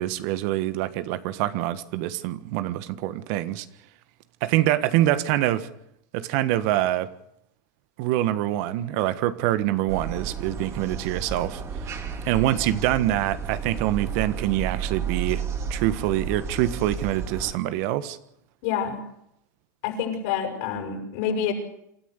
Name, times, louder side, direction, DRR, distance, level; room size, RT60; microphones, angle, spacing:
voice 1, 0.0-3.6 4.4-5.7 6.1-7.1 8.0-11.6 12.2-15.4 15.7-18.2, right 14 dB, 60° right, 1.5 m, -25 dB
sound 1, 9.9-17.5, right 6 dB, 30° right, 3.5 m, -32 dB
voice 2, 18.6-19.0 19.8-21.5, left 8 dB, 65° left, 6.8 m, -27 dB
27.0 x 13.0 x 8.3 m
hypercardioid pair, 110°, 10 cm